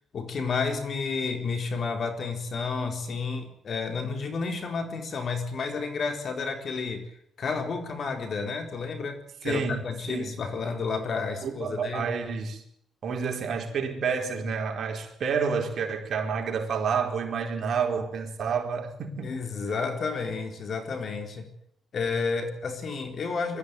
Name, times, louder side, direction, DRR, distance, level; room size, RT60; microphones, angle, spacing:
voice 1, 0.1-7.1 7.4-12.1 19.2-21.5 21.9-23.6, left 4 dB, 50° left, 4.2 m, -31 dB
voice 2, 9.4-10.4 11.4-12.6 13.0-19.3, right 6 dB, 55° right, 4.5 m, -29 dB
22.0 x 14.0 x 9.7 m
cardioid pair, 90°, 0 cm